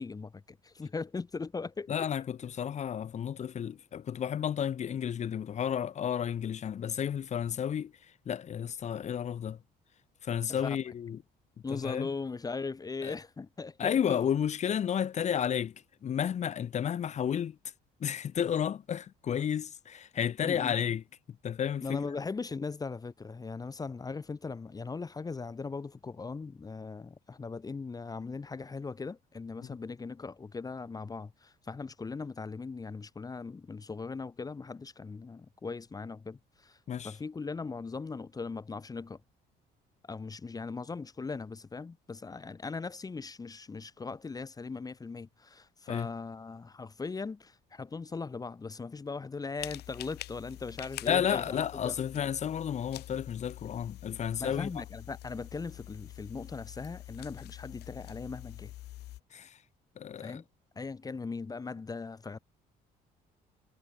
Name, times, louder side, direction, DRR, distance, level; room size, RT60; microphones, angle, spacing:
voice 1, 0.0-1.9 10.5-10.8 11.6-14.2 20.4-20.7 21.8-36.8 37.0-39.2 40.0-51.9 54.4-58.7 60.2-60.4 60.7-62.4, left 4 dB, 20° left, 1.1 m, -39 dB
voice 2, 1.9-7.9 8.3-9.6 10.2-11.2 11.7-12.1 13.0-13.2 13.8-15.7 16.0-17.6 18.0-21.0 21.4-22.0 29.6-29.7 36.9-37.1 45.9-46.1 51.1-54.8 59.3-59.6 60.0-60.4, left 8 dB, 45° left, 1.0 m, -32 dB
sound 1, 49.6-59.2, left 15 dB, 75° left, 2.2 m, -46 dB
cardioid pair, 110°, 17 cm